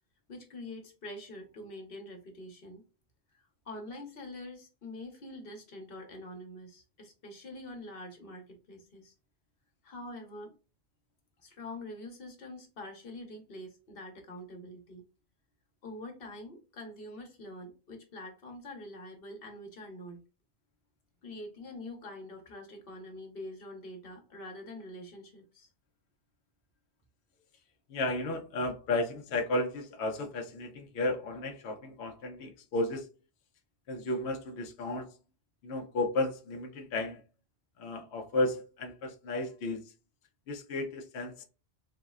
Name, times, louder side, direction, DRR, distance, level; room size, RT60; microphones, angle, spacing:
voice 1, 0.3-2.8 3.3-9.1 9.8-10.5 11.4-15.0 15.8-20.2 21.2-25.7, left 1 dB, 60° left, 1.1 m, -45 dB
voice 2, 27.9-33.1 33.9-35.1 35.6-37.2 37.8-39.9 40.5-41.4, left 2 dB, 75° left, 0.9 m, -33 dB
3.9 x 2.1 x 2.3 m
omnidirectional pair, 1.1 m